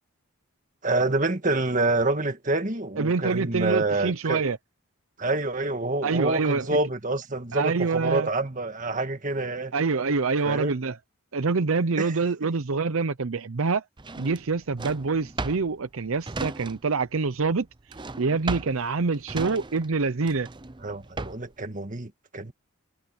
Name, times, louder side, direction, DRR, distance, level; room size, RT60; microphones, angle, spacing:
voice 1, 0.8-4.4 5.2-9.7 10.4-10.7 12.0-12.1 20.8-22.5, right 2 dB, 35° right, 1.9 m, -27 dB
voice 2, 3.0-4.6 6.0-6.8 7.5-8.3 9.7-11.0 11.3-13.8 14.2-17.7 18.2-20.5, right 4 dB, 70° right, 0.7 m, -26 dB
Drawer open or close, 14.0-17.1 17.3-21.6, right 3 dB, 20° right, 0.6 m, -36 dB
head